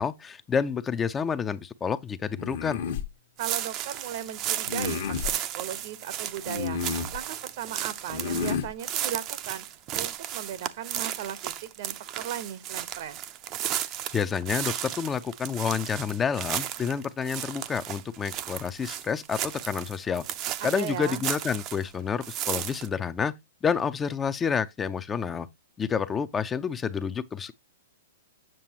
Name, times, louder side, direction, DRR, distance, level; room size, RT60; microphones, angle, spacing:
voice 1, 0.0-2.8 14.1-20.2 20.6-23.3 23.6-25.5 25.8-27.5, left 6 dB, 15° left, 0.5 m, -29 dB
sound 1, 2.4-3.1 4.7-5.3 6.5-7.2 8.1-8.7, left 6 dB, 60° left, 1.1 m, -31 dB
sound 2, 3.4-21.9 22.2-22.9, right 11 dB, 35° right, 0.5 m, -34 dB
voice 2, 3.4-9.6 9.9-13.2 20.6-21.2, right 10 dB, 55° right, 0.8 m, -37 dB
7.6 x 6.6 x 2.8 m
hypercardioid pair, 125°, 0 cm